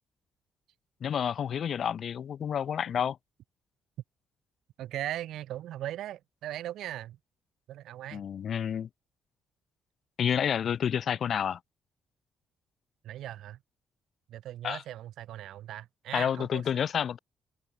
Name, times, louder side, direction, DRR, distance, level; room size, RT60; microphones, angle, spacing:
voice 1, 1.0-3.2 8.1-8.9 10.2-11.6 14.6-14.8 16.1-17.2, left 8 dB, 60° left, 1.9 m, -29 dB
voice 2, 4.8-7.2 7.7-8.2 13.0-13.6 14.3-16.6, right 13 dB, 80° right, 5.0 m, -38 dB
open air
cardioid pair, 90°, 0 cm